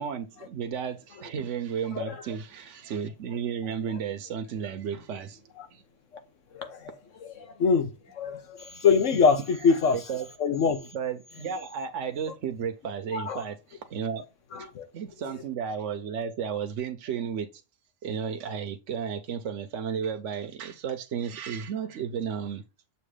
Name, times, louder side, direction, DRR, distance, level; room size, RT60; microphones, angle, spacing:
voice 1, 0.0-5.4 5.7-5.8 10.1-10.3 10.9-14.2 14.6-14.7 14.9-17.5 18.0-22.6, right 7 dB, 75° right, 1.1 m, -33 dB
voice 2, 6.5-6.9 7.2-10.0 10.4-10.9 13.1-13.4 14.5-14.8, left 5 dB, 80° left, 1.4 m, -24 dB
6.9 x 2.9 x 4.9 m
omnidirectional pair, 1.3 m